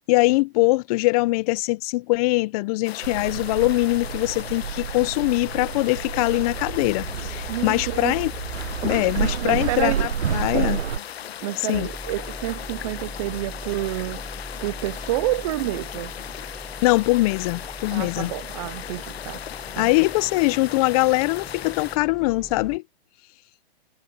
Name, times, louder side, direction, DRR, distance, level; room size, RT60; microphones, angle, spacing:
voice 1, 0.0-8.3 8.8-10.8 11.6-11.9 16.8-18.3 19.8-22.8, left 22 dB, 35° left, 1.0 m, -22 dB
sound 1, 2.8-22.0, left 10 dB, 70° left, 1.2 m, -37 dB
sound 2, 3.0-11.0, right 8 dB, 85° right, 1.0 m, -30 dB
sound 3, 6.4-11.4 11.7-22.8, equal, ahead, 5.2 m, -42 dB
voice 2, 7.5-8.2 9.1-10.1 11.4-14.3 14.6-16.1 17.9-19.4 19.8-19.9, right 16 dB, 30° right, 0.5 m, -29 dB
hypercardioid pair, 135°, 32 cm